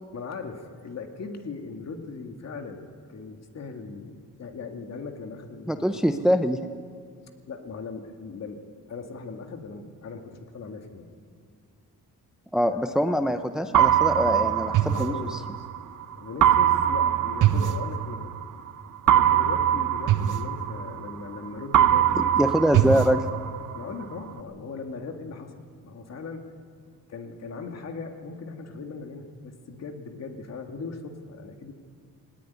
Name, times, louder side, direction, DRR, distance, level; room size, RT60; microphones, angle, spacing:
voice 1, 0.1-6.3 7.5-8.6 8.9-11.1 12.6-12.8 13.1-13.4 14.9-15.7 16.1-18.4 19.0-22.4 23.7-26.5 27.1-31.7, left 4 dB, 50° left, 4 dB, 2.1 m, -39 dB
voice 2, 5.7-6.6 12.5-15.4 22.2-23.2, equal, ahead, 8 dB, 0.6 m, -24 dB
sound 1, 13.7-15.8 16.4-18.5 19.1-21.4 21.7-23.8, right 10 dB, 65° right, 0.9 m, -22 dB
19.5 x 19.0 x 9.4 m, 2.1 s
wide cardioid pair, 145°, 34 cm